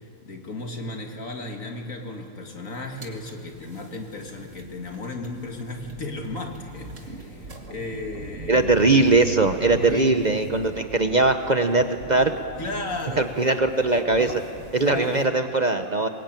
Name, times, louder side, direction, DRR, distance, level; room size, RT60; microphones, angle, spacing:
voice 1, 0.2-8.7 9.8-10.2 12.6-13.3 14.8-15.2, left 2 dB, 70° left, 3 dB, 2.6 m, -34 dB
sound 1, 2.9-15.3, right 1 dB, 65° right, 2.6 m, -41 dB
voice 2, 8.5-12.3 13.2-14.4 14.7-16.1, right 3 dB, 40° right, 7 dB, 0.8 m, -20 dB
23.0 x 20.0 x 9.1 m, 2.6 s
omnidirectional pair, 1.4 m